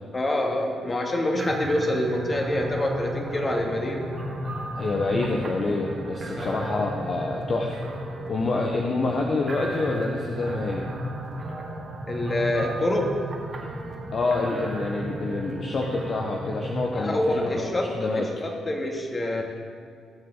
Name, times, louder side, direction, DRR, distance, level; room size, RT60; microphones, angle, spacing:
voice 1, 0.1-4.1 6.4-6.5 12.1-13.2 16.9-19.4, left 1 dB, 30° left, 1 dB, 2.3 m, -26 dB
sound 1, 1.4-17.6, right 1 dB, 40° right, 2.0 m, -34 dB
voice 2, 4.7-7.8 8.3-10.9 14.1-18.3, left 3 dB, 45° left, 0 dB, 1.0 m, -27 dB
17.0 x 7.7 x 4.0 m, 2.1 s
hypercardioid pair, 45°, 0 cm